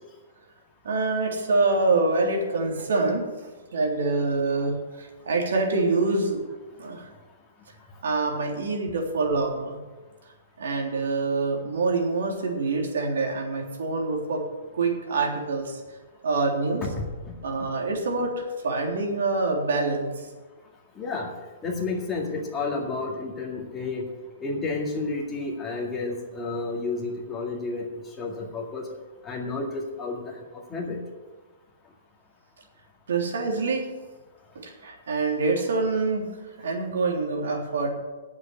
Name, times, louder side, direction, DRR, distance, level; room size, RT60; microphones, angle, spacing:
voice 1, 0.8-3.2 3.7-6.4 6.8-7.1 8.0-9.8 10.6-14.4 14.7-15.8 16.2-16.8 17.4-20.3 33.1-33.9 34.5-37.9, right 3 dB, 80° right, 0 dB, 3.4 m, -26 dB
voice 2, 17.0-17.7 21.0-21.3 21.6-24.0 24.4-27.9 28.2-28.9 29.2-31.0, left 3 dB, 10° left, -2 dB, 2.0 m, -31 dB
9.7 x 7.4 x 9.3 m, 1.2 s
hypercardioid pair, 170°, 0 cm